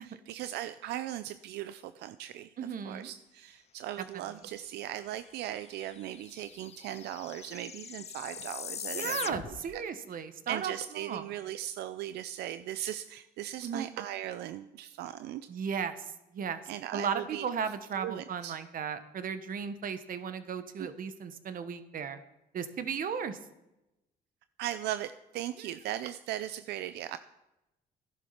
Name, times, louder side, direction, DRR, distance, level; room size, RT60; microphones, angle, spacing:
voice 1, 0.0-9.8 10.5-15.5 16.7-17.5 18.0-18.6 24.6-27.2, right 12 dB, 90° right, 12 dB, 0.5 m, -38 dB
voice 2, 2.6-3.1 4.1-4.3 8.9-11.3 13.6-13.9 15.5-16.6 16.9-22.2 22.5-23.4 25.6-25.7, right 7 dB, 55° right, 11 dB, 1.3 m, -35 dB
sound 1, 5.3-5.4 5.6-9.8, left 8 dB, 40° left, 0.5 m, -42 dB
13.0 x 11.0 x 5.8 m, 0.92 s
cardioid pair, 95°, 17 cm